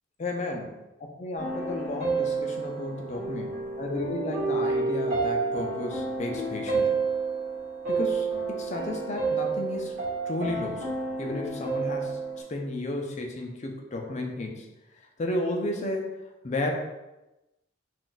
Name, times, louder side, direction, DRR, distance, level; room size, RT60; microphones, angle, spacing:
voice 1, 0.2-0.7 1.0-3.5 3.8-7.0 7.9-10.0 10.3-10.9 11.2-12.2 12.5-14.7 15.2-16.2 16.4-16.7, left 2 dB, 35° left, 2 dB, 0.4 m, -33 dB
sound 1, 1.4-12.4, right 4 dB, 40° right, 1.1 m, -30 dB
2.5 x 2.2 x 3.8 m, 1.0 s
head